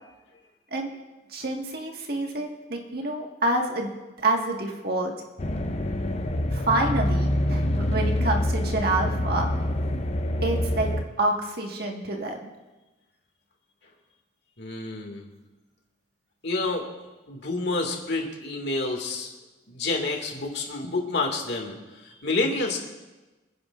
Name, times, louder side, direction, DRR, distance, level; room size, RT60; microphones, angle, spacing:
voice 1, 1.3-5.1 6.5-9.5 10.4-10.9 11.2-12.5, right 2 dB, 55° right, 1 dB, 1.8 m, -27 dB
sound 1, 5.4-11.0, left 1 dB, 35° left, 0.7 m, -26 dB
voice 2, 14.6-15.3 16.4-16.9 17.3-19.3 19.7-22.8, left 3 dB, 60° left, 1 dB, 2.3 m, -29 dB
27.5 x 10.0 x 2.6 m, 1.1 s
head